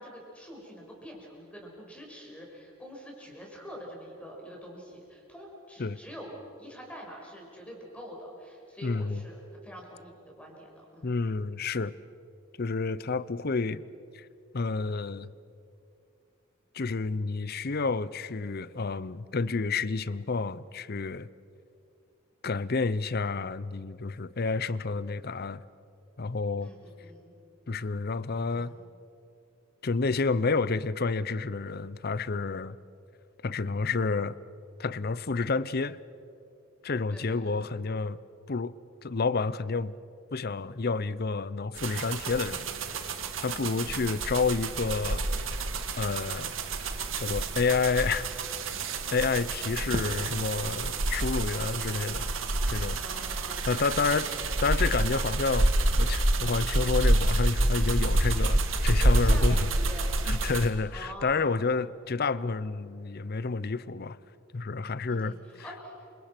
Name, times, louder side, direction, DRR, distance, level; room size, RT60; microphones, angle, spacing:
voice 1, 0.0-11.0 26.6-27.3 28.5-28.8 37.1-37.7 43.8-44.3 53.0-54.5 59.0-60.2 60.9-61.5 65.1-66.1, equal, 5° left, 5.9 m, -45 dB
voice 2, 8.8-9.3 11.0-11.9 12.6-13.8 14.1-14.3 14.5-15.3 16.7-21.3 22.4-25.6 26.2-26.7 27.7-28.8 29.8-32.8 33.4-34.4 34.8-36.0 36.8-38.2 38.5-38.7 39.0-39.9 40.3-42.6 43.4-45.2 45.5-45.6 46.0-46.5 47.2-48.3 49.1-52.3 52.7-53.0 53.7-54.3 54.6-59.6 60.3-64.2 64.5-65.4, left 4 dB, 50° left, 0.6 m, -29 dB
sound 1, 41.8-60.7, right 2 dB, 70° right, 2.2 m, -28 dB
29.0 x 26.0 x 6.0 m
head